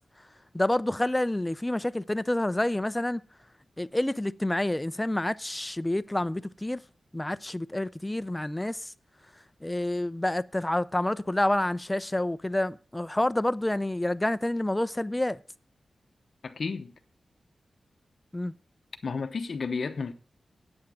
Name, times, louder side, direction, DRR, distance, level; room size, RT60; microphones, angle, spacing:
voice 1, 0.5-3.2 3.8-6.8 7.1-8.9 9.6-15.4 18.3-18.5, left 1 dB, 10° left, 0.4 m, -28 dB
voice 2, 16.4-16.9 19.0-20.1, left 4 dB, 60° left, 0.9 m, -32 dB
8.8 x 8.7 x 4.9 m
wide cardioid pair, 110°, 0 cm